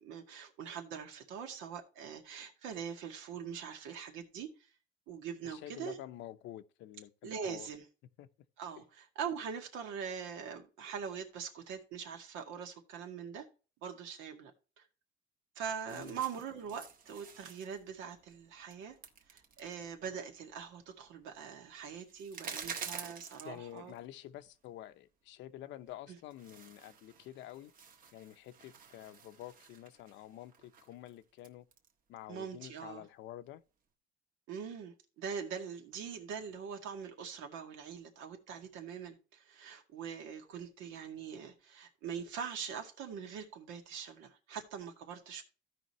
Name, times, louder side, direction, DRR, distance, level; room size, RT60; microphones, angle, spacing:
voice 1, 0.0-4.5 5.1-6.0 7.2-7.9 8.6-13.5 13.8-14.5 14.8-14.9 15.6-19.0 19.3-23.9 26.1-26.2 32.3-33.0 34.5-45.4, right 7 dB, 80° right, 2.0 m, -43 dB
voice 2, 5.4-7.7 8.2-8.3 15.9-16.2 23.4-27.7 28.1-31.7 32.1-33.6, left 13 dB, 70° left, 0.8 m, -49 dB
sound 1, 15.9-24.0 24.4-24.5 25.9-26.0 26.3-31.9, right 6 dB, 45° right, 1.4 m, -50 dB
15.5 x 5.2 x 3.1 m
cardioid pair, 140°, 20 cm